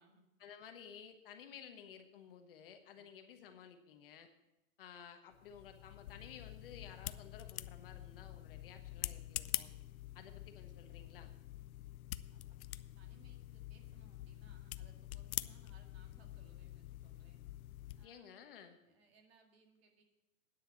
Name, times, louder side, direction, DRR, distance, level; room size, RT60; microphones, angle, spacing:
voice 1, 0.4-4.3 4.8-9.7 10.1-11.3 18.0-18.8, left 8 dB, 40° left, 6 dB, 1.3 m, -55 dB
sound 1, 5.3-18.1, left 14 dB, 75° left, 0.6 m, -46 dB
voice 2, 12.3-12.6 13.0-17.4 18.0-18.3 18.8-20.0, right 4 dB, 45° right, 3 dB, 2.1 m, -68 dB
9.7 x 6.7 x 8.2 m, 0.93 s
hypercardioid pair, 170°, 42 cm